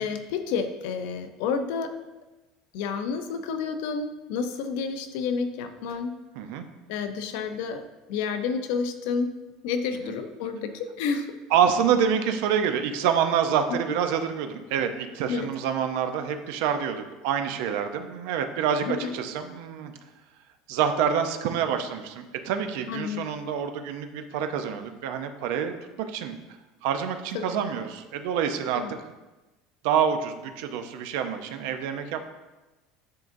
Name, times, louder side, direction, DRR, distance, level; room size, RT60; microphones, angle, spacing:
voice 1, 0.0-1.9 2.7-6.1 6.9-7.8 8.1-9.4 9.6-11.3 13.7-14.0 15.3-15.5 18.8-19.1 22.9-23.2 27.3-27.4 28.7-28.9, left 5 dB, 70° left, 8 dB, 0.6 m, -30 dB
voice 2, 11.5-19.9 20.7-26.4 26.8-28.8 29.8-32.2, right 8 dB, 70° right, 7 dB, 0.6 m, -27 dB
10.5 x 3.8 x 2.6 m, 1.1 s
cardioid pair, 165°, 0 cm